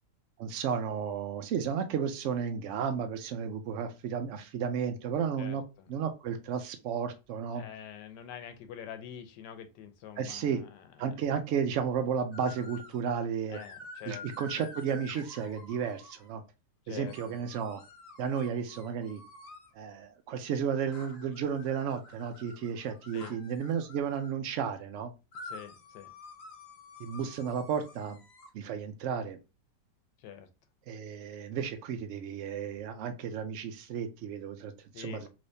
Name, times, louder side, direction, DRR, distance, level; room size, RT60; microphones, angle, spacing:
voice 1, 0.4-5.6 5.9-7.6 10.2-10.6 11.0-13.6 14.1-16.4 16.9-17.8 18.2-19.2 19.7-25.1 27.0-28.2 28.5-29.4 30.9-35.3, right 7 dB, 80° right, 7 dB, 0.6 m, -33 dB
voice 2, 5.4-5.9 7.6-11.4 13.5-14.3 16.9-17.4 23.1-23.4 25.4-26.1 30.2-30.5 34.9-35.3, left 9 dB, 90° left, 8 dB, 1.3 m, -46 dB
sound 1, 12.3-13.0 13.5-16.3 17.1-19.7 20.9-24.3 25.3-28.5, left 3 dB, 55° left, 1.2 m, -49 dB
3.3 x 3.1 x 2.6 m, 0.28 s
omnidirectional pair, 1.8 m